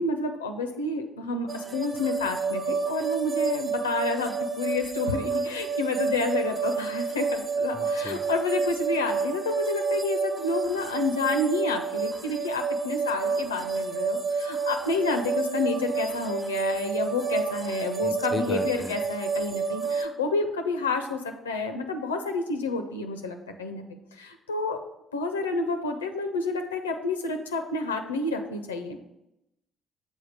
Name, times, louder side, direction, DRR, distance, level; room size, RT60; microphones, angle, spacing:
voice 1, 0.0-23.8 24.2-24.8 25.1-29.0, left 3 dB, 80° left, 5 dB, 0.5 m, -29 dB
sound 1, 1.5-20.0, right 4 dB, 35° right, 0.8 m, -29 dB
voice 2, 7.7-8.2 18.0-19.0, left 2 dB, 25° left, 11 dB, 0.5 m, -34 dB
7.3 x 4.1 x 4.8 m, 0.86 s
figure-of-eight pair, 45°, 0 cm